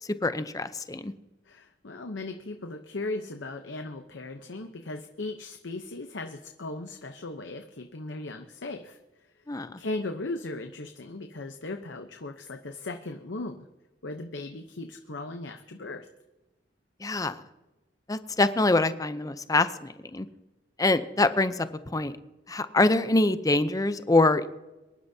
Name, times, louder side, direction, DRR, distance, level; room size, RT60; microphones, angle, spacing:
voice 1, 0.2-1.1 9.5-9.8 17.0-17.4 18.1-20.3 20.8-21.7 21.9-22.1 22.5-24.5, left 2 dB, 20° left, 12 dB, 0.6 m, -24 dB
voice 2, 1.5-9.0 9.8-13.7 14.0-16.1, left 2 dB, 80° left, 5 dB, 0.9 m, -37 dB
23.5 x 11.5 x 2.8 m, 1.1 s
head